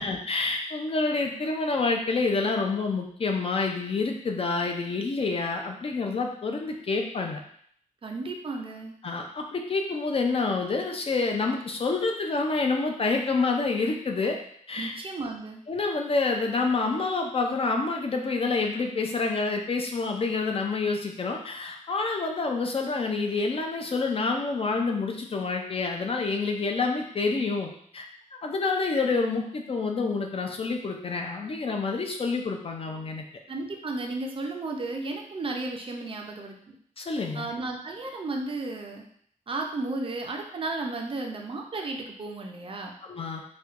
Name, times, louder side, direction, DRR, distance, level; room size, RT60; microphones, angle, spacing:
voice 1, 0.0-7.4 9.0-14.4 14.7-14.9 15.7-28.1 28.3-33.2 37.0-37.5 43.1-43.4, left 3 dB, 45° left, 2 dB, 0.4 m, -28 dB
voice 2, 8.0-8.9 14.8-15.6 33.5-36.8 37.3-39.0 39.5-42.9, right 2 dB, 40° right, 2 dB, 0.4 m, -34 dB
4.2 x 2.2 x 2.4 m, 0.63 s
wide cardioid pair, 170°, 14 cm